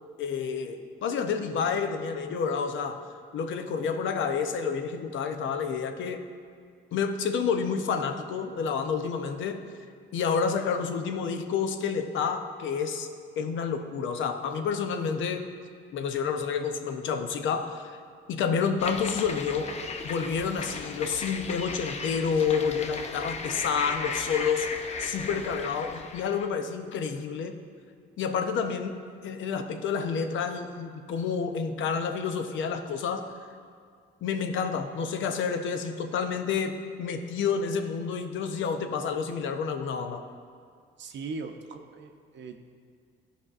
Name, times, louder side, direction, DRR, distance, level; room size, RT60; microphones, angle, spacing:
voice 1, 0.2-3.0 3.3-6.2 6.9-9.6 10.1-13.1 13.4-15.5 15.9-18.0 18.3-19.7 20.0-24.7 25.0-27.6 28.2-33.3 34.2-40.2, left 6 dB, 75° left, 7 dB, 0.6 m, -29 dB
sound 1, 18.8-26.5, left 4 dB, 35° left, 0.5 m, -36 dB
voice 2, 41.0-42.6, right 4 dB, 65° right, 5 dB, 0.6 m, -39 dB
13.5 x 5.0 x 2.5 m, 2.1 s
cardioid pair, 90°, 20 cm